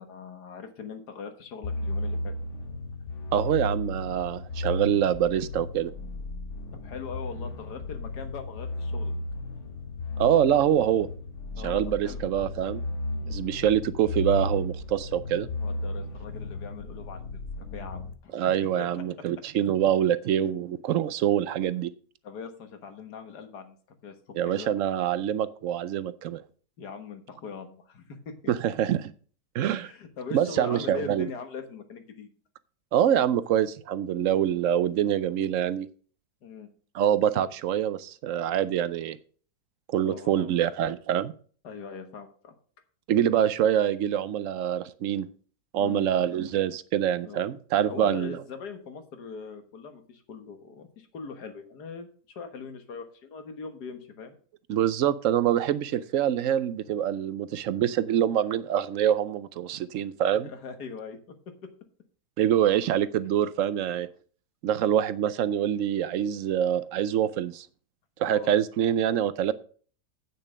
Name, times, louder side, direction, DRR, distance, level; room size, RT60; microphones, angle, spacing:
voice 1, 0.0-2.3 6.8-9.1 11.6-12.2 13.2-13.5 15.6-17.4 17.7-18.3 18.8-19.0 22.2-23.8 24.0-24.2 24.6-24.7 26.8-28.5 29.8-32.3 36.4-36.7 40.0-40.5 41.6-42.6 45.8-46.1 47.2-47.5 47.9-54.3 60.4-61.4 68.2-68.5, left 5 dB, 80° left, 7 dB, 1.9 m, -41 dB
sound 1, 1.6-18.1, left 2 dB, 55° left, 1.1 m, -34 dB
voice 2, 3.3-5.9 10.2-11.1 11.6-12.8 13.3-15.5 18.3-21.9 24.4-26.4 28.5-29.0 29.5-29.9 30.3-31.3 32.9-35.9 36.9-39.2 39.9-41.3 43.1-45.3 45.7-48.4 54.7-60.5 62.4-64.1 64.6-67.7 68.2-69.5, right 10 dB, 65° right, 15 dB, 0.8 m, -25 dB
8.7 x 6.6 x 5.1 m, 0.43 s
omnidirectional pair, 1.7 m